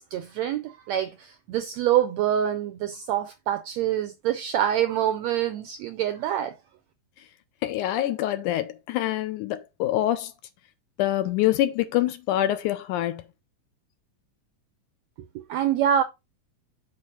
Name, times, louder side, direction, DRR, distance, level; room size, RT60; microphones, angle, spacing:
voice 1, 0.0-6.5 15.3-16.0, right 10 dB, 80° right, 1.5 m, -26 dB
voice 2, 7.6-10.3 11.0-13.2, left 13 dB, 80° left, 2.0 m, -25 dB
6.8 x 4.2 x 5.5 m
omnidirectional pair, 3.9 m